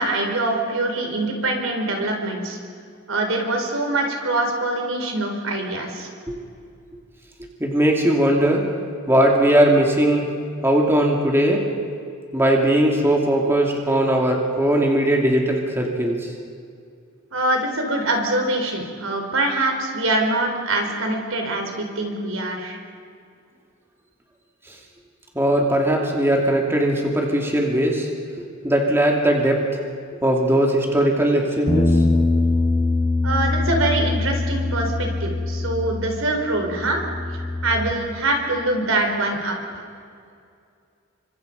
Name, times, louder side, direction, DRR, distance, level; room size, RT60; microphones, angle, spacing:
voice 1, 0.0-2.6 3.1-6.1 17.3-22.8 33.2-37.0 37.6-39.8, right 2 dB, 70° right, 3 dB, 4.4 m, -24 dB
voice 2, 7.6-8.7 9.1-10.2 10.6-11.6 12.3-16.3 25.3-28.1 28.6-29.6 30.2-32.0, right 1 dB, 10° right, 0 dB, 2.7 m, -19 dB
sound 1, 31.7-37.9, left 2 dB, 25° left, 3.6 m, -23 dB
29.5 x 25.5 x 5.4 m, 2.3 s
head